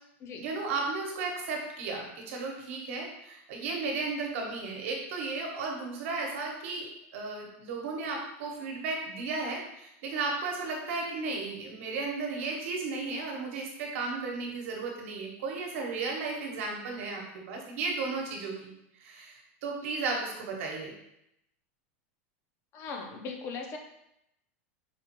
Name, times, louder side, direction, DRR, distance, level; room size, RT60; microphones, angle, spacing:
voice 1, 0.4-18.7 19.0-20.9, right 3 dB, 70° right, 0 dB, 1.0 m, -34 dB
voice 2, 22.7-23.8, left 4 dB, 35° left, 3 dB, 0.6 m, -39 dB
4.9 x 2.4 x 2.9 m, 0.80 s
supercardioid pair, 145°, 7 cm